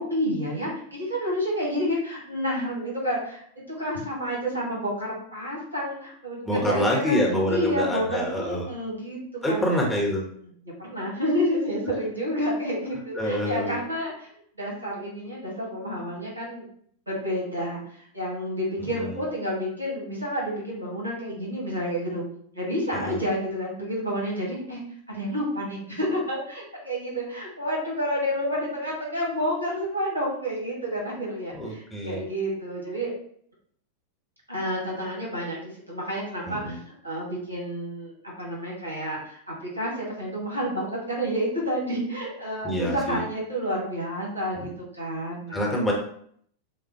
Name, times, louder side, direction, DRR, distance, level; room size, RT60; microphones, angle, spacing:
voice 1, 0.0-7.2 7.5-9.2 9.5-9.6 10.6-14.3 14.6-16.7 17.1-22.2 22.5-24.8 25.1-33.1 34.5-36.8 37.0-45.8, equal, 80° right, -4 dB, 1.7 m, -29 dB
voice 2, 6.4-8.7 9.4-10.2 13.1-13.8 18.9-19.2 22.9-23.2 31.5-32.2 36.5-36.8 42.6-43.2 44.5-44.7 45.5-45.9, left 1 dB, 5° left, -3 dB, 1.2 m, -26 dB
7.1 x 2.4 x 3.0 m, 0.63 s
figure-of-eight pair, 90°, 0 cm